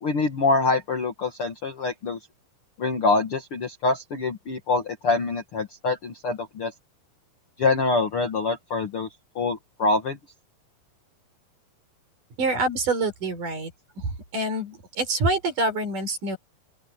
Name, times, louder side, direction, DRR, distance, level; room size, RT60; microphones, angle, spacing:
voice 1, 0.0-2.2 2.8-6.7 7.6-9.1 9.4-10.2, left 3 dB, 50° left, 1.8 m, -25 dB
voice 2, 12.4-13.7 14.0-16.4, right 2 dB, 55° right, 6.5 m, -26 dB
open air
omnidirectional pair, 4.6 m